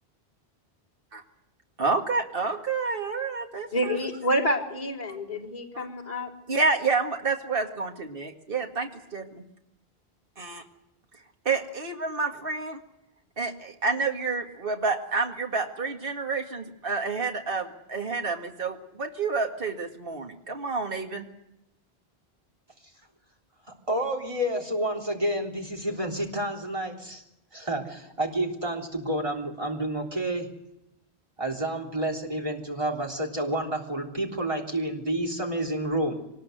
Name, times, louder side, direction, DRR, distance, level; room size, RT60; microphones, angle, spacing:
voice 1, 1.8-4.0 5.7-5.9 6.5-9.4 10.4-10.6 11.5-12.8 13.4-21.3, right 4 dB, 60° right, 2 dB, 2.2 m, -29 dB
voice 2, 3.7-6.3, equal, 45° left, -4 dB, 3.9 m, -28 dB
voice 3, 23.9-27.2 27.5-30.5 31.4-36.1, right 1 dB, 30° right, 2 dB, 3.5 m, -29 dB
24.0 x 19.5 x 7.9 m, 0.83 s
omnidirectional pair, 1.1 m